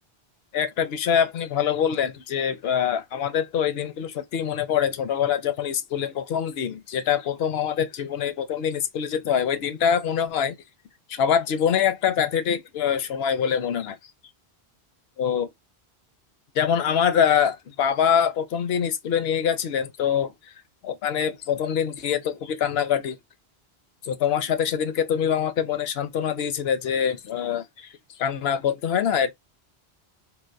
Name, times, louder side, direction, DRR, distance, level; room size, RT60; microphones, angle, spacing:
voice 1, 0.5-10.6 11.1-14.0 15.2-15.5 16.5-20.3 20.8-23.2 24.0-27.9 28.2-29.3, left 8 dB, 75° left, 0.9 m, -24 dB
3.9 x 2.5 x 2.6 m
omnidirectional pair, 1.0 m